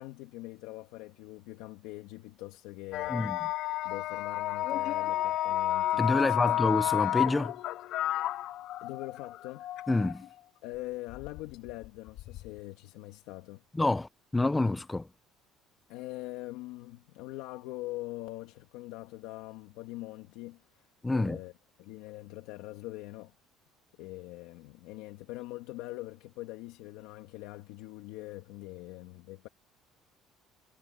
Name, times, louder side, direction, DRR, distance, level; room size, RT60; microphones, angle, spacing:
voice 1, 0.0-3.5 3.8-6.5 6.8-6.9 8.8-9.7 10.6-13.6 15.9-21.5 21.8-23.3 24.0-29.5, left 18 dB, 90° left, 2.2 m, -43 dB
sound 1, 2.9-10.3 11.1-12.6, left 13 dB, 50° left, 0.7 m, -31 dB
voice 2, 6.0-7.5 9.9-10.3 13.7-15.1 21.0-21.4, left 2 dB, 10° left, 0.8 m, -28 dB
cardioid pair, 170°, 0 cm